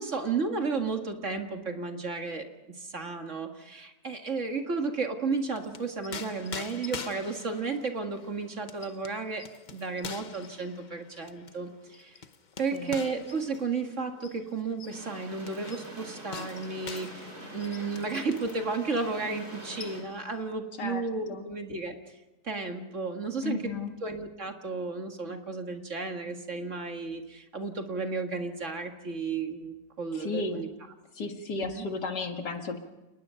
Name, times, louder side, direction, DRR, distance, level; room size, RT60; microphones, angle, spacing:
voice 1, 0.0-12.2 12.6-22.0 22.4-30.7 31.2-31.9, right 4 dB, 45° right, 4 dB, 2.1 m, -33 dB
sound 1, 5.3-18.6 19.0-19.1 19.4-20.3, left 6 dB, 45° left, 0.6 m, -45 dB
sound 2, 14.9-20.0, right 1 dB, 60° right, 5.2 m, -45 dB
voice 2, 23.4-23.9 30.1-30.6 31.2-32.8, left 4 dB, 70° left, 5 dB, 2.5 m, -34 dB
29.5 x 19.5 x 5.7 m, 1.1 s
omnidirectional pair, 1.9 m